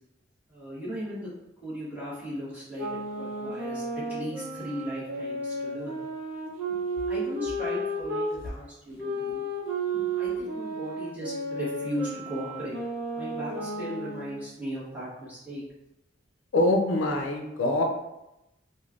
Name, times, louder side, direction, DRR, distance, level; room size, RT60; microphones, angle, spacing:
voice 1, 0.5-1.3 1.6-3.8 4.1-6.0 7.1-9.4 9.9-12.8 13.1-15.6, equal, 10° right, -10 dB, 1.1 m, -37 dB
sound 1, 2.7-8.3 9.0-14.4, right 1 dB, 85° right, 0.8 m, -33 dB
voice 2, 16.5-17.8, left 2 dB, 85° left, 3 dB, 0.4 m, -24 dB
3.1 x 2.2 x 2.4 m, 0.91 s
head